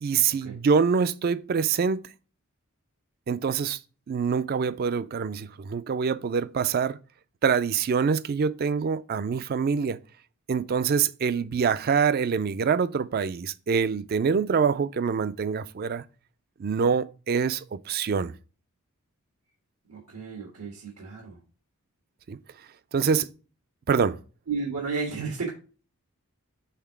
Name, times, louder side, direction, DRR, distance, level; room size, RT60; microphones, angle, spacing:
voice 1, 0.0-2.0 3.3-3.8 4.1-7.0 7.4-10.0 10.5-16.0 16.6-18.3 22.3-22.4 22.9-23.3 23.9-24.2, right 6 dB, 45° right, 0.3 m, -25 dB
voice 2, 19.9-21.4 24.5-25.5, right 4 dB, 90° right, 1.5 m, -33 dB
5.8 x 3.6 x 4.6 m
head